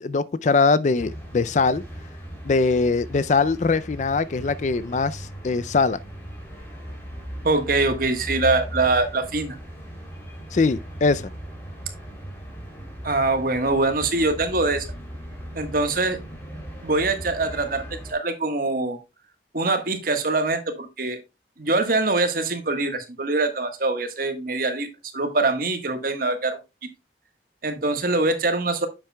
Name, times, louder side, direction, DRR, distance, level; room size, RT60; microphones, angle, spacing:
voice 1, 0.0-1.8 2.4-6.0 10.5-11.3, left 4 dB, 40° left, 0.4 m, -22 dB
sound 1, 1.0-18.1, equal, 15° left, 3.1 m, -38 dB
voice 2, 7.4-9.6 13.0-14.9 15.5-16.2 16.8-17.8 18.1-19.0 19.5-21.2 21.6-24.9 25.1-26.6 27.6-28.9, right 3 dB, 55° right, 1.4 m, -23 dB
9.5 x 7.5 x 2.2 m
head